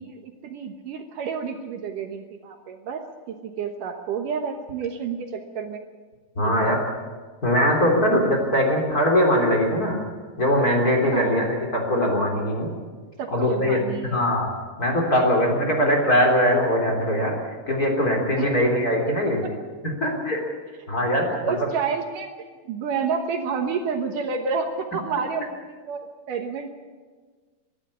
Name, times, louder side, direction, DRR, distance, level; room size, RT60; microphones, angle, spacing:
voice 1, 0.0-5.8 6.4-6.7 11.1-11.4 13.2-14.2 18.4-18.5 19.1-19.2 21.2-22.3 22.7-26.7, right 6 dB, 70° right, 5 dB, 2.5 m, -30 dB
voice 2, 6.4-6.8 7.4-10.0 10.4-12.7 13.3-14.5 14.8-17.3 17.7-19.4 19.8-20.4 20.9-21.3 21.6-21.7, equal, 25° left, 0 dB, 3.7 m, -21 dB
23.5 x 12.0 x 9.9 m, 1.5 s
omnidirectional pair, 4.3 m